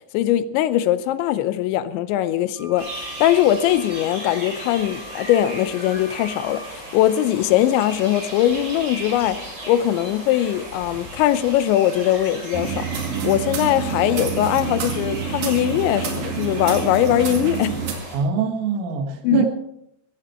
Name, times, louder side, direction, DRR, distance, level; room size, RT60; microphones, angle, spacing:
voice 1, 0.1-9.4 9.7-12.9 13.2-17.8 19.2-19.5, left 12 dB, 80° left, 3.0 m, -21 dB
sound 1, 2.6-6.7, left 2 dB, 55° left, 3.6 m, -42 dB
sound 2, 2.8-18.2, right 1 dB, 25° right, 5.2 m, -36 dB
sound 3, 12.5-17.9, right 6 dB, 55° right, 3.5 m, -27 dB
voice 2, 18.1-19.5, right 6 dB, 85° right, 4.2 m, -23 dB
16.0 x 15.0 x 4.3 m
omnidirectional pair, 5.5 m